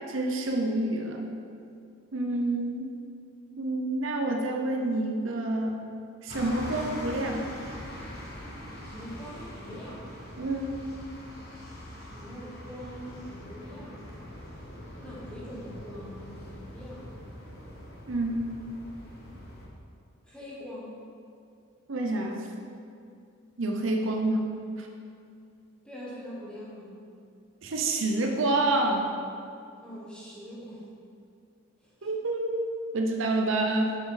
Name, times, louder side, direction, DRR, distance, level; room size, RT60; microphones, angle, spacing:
voice 1, 0.1-1.2 2.1-2.9 3.6-5.8 6.2-7.4 10.4-10.8 18.1-18.5 21.9-22.5 23.6-24.5 24.8-24.9 27.6-29.1 32.0-34.0, right 2 dB, 70° right, 2 dB, 0.8 m, -28 dB
sound 1, 6.3-19.7, equal, 50° left, 1.4 m, -43 dB
voice 2, 8.8-10.1 12.0-14.2 15.0-17.2 20.2-20.9 25.8-27.0 29.8-30.9 31.8-32.1, equal, 5° left, -7 dB, 1.4 m, -43 dB
7.8 x 6.0 x 3.9 m, 2.5 s
head